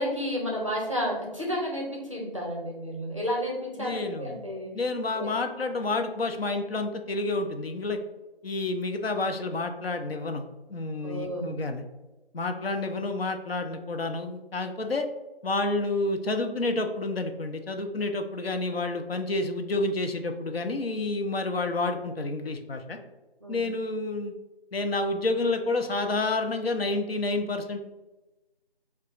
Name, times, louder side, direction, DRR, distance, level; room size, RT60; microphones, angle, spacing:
voice 1, 0.0-4.7 5.1-5.3 11.0-11.5 23.4-23.7, equal, 30° right, -2 dB, 0.6 m, -31 dB
voice 2, 3.8-4.4 4.7-8.0 8.4-11.8 12.3-15.1 15.4-23.0 23.5-24.3 24.7-27.8, left 2 dB, 70° left, 5 dB, 0.5 m, -29 dB
4.7 x 2.3 x 2.4 m, 1.1 s
figure-of-eight pair, 175°, 31 cm